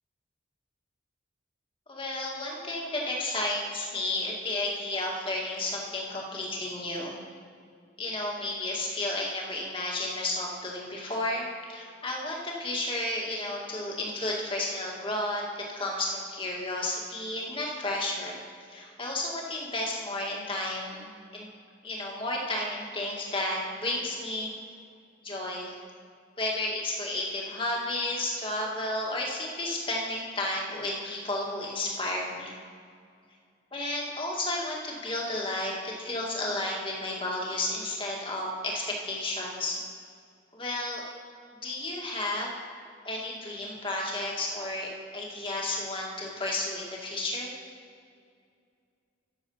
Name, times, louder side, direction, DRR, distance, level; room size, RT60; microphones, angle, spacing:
voice 1, 1.9-7.2 8.0-18.4 18.7-21.5 21.8-24.5 25.2-25.8 26.4-32.5 33.7-39.8 40.5-41.0 41.6-42.5 43.0-47.5, left 2 dB, 25° left, -2 dB, 2.0 m, -32 dB
13.5 x 7.3 x 5.6 m, 2.3 s
head